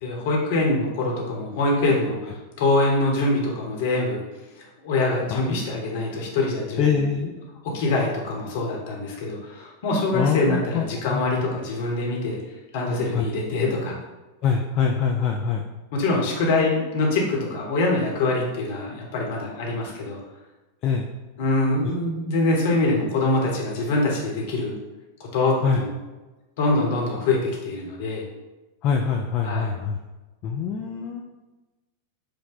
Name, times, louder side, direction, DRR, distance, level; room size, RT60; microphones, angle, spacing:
voice 1, 0.0-4.2 4.6-7.0 7.6-12.4 12.7-14.0 15.9-20.2 21.4-24.7 25.2-25.9 26.6-28.2 29.4-29.7, left 2 dB, 50° left, -1 dB, 1.1 m, -24 dB
voice 2, 6.8-7.3 7.8-8.1 10.1-11.4 13.1-13.3 14.4-15.7 20.8-21.1 21.8-21.9 25.6-25.8 28.8-30.0 30.4-31.2, left 6 dB, 35° left, 1 dB, 0.4 m, -24 dB
4.8 x 2.2 x 3.9 m, 1.1 s
figure-of-eight pair, 90°, 0 cm